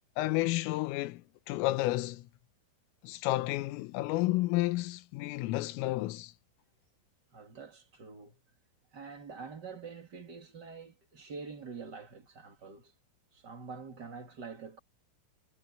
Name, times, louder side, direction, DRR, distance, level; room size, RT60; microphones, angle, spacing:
voice 1, 0.2-2.3 3.0-6.3, left 18 dB, 80° left, 3.5 m, -31 dB
voice 2, 7.3-8.4 8.9-12.9 13.3-14.8, right 5 dB, 40° right, 1.6 m, -46 dB
omnidirectional pair, 5.9 m